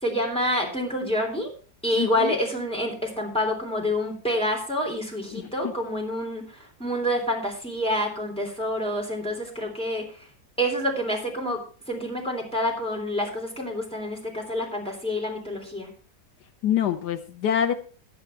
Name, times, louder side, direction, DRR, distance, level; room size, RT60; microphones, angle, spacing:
voice 1, 0.0-1.5 1.8-6.4 6.8-10.0 10.6-11.6 11.9-15.9, equal, 5° left, 0 dB, 3.4 m, -27 dB
voice 2, 1.9-2.4 5.3-5.7 16.6-17.7, left 9 dB, 75° left, 10 dB, 1.4 m, -26 dB
10.5 x 9.6 x 4.5 m, 0.39 s
omnidirectional pair, 1.8 m